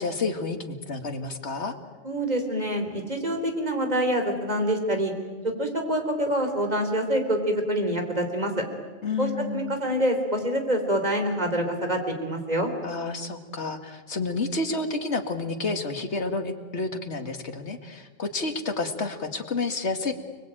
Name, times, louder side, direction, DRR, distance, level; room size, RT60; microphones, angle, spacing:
voice 1, 0.0-1.7 9.0-9.8 12.8-20.1, left 3 dB, 65° left, 6 dB, 2.4 m, -30 dB
voice 2, 2.0-5.1 5.4-8.5 9.2-12.7, right 1 dB, 35° right, 5 dB, 3.9 m, -26 dB
30.0 x 21.0 x 9.1 m, 1.4 s
omnidirectional pair, 1.2 m